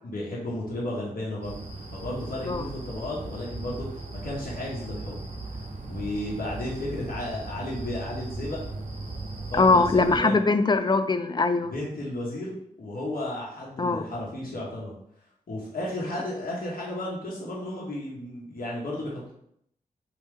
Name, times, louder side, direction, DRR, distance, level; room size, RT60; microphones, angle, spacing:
voice 1, 0.0-1.6 1.9-5.2 5.9-8.6 9.5-10.4 11.7-14.9 15.5-19.3, left 1 dB, 65° left, -5 dB, 1.2 m, -33 dB
sound 1, 1.4-10.2, right 2 dB, 45° right, 0.9 m, -38 dB
voice 2, 9.5-11.7 13.8-14.0, left 3 dB, 30° left, 10 dB, 0.4 m, -21 dB
3.2 x 2.9 x 3.4 m, 0.71 s
cardioid pair, 40°, 16 cm